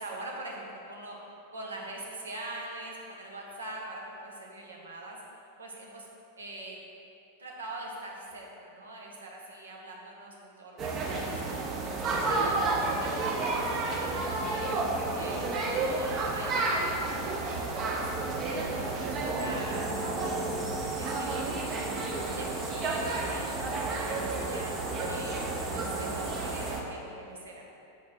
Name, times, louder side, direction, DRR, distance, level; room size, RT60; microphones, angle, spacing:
voice 1, 0.0-5.2 5.6-6.1 6.4-6.8 7.4-11.6 12.0-13.1 13.4-14.8 15.1-18.2 18.5-21.9 22.3-24.7 25.1-25.4 25.7-27.6, right 2 dB, 70° right, -2 dB, 1.0 m, -43 dB
sound 1, 10.8-26.8, right 3 dB, 30° right, 0.7 m, -31 dB
sound 2, 19.7-26.7, equal, ahead, 1.0 m, -46 dB
6.3 x 4.2 x 4.3 m, 2.7 s
figure-of-eight pair, 90°, 0 cm